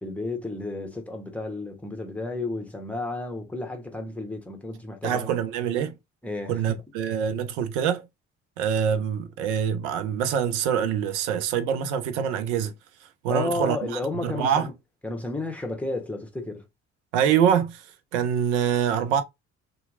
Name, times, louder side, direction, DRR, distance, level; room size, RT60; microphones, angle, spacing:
voice 1, 0.0-5.4 6.2-6.8 13.3-14.7 15.0-16.6, left 2 dB, 5° left, 1.0 m, -32 dB
voice 2, 5.0-5.9 6.5-8.1 8.6-12.7 13.2-14.7 17.1-17.9 18.1-19.2, right 8 dB, 70° right, 0.6 m, -25 dB
2.8 x 2.5 x 2.4 m
figure-of-eight pair, 50°, 37 cm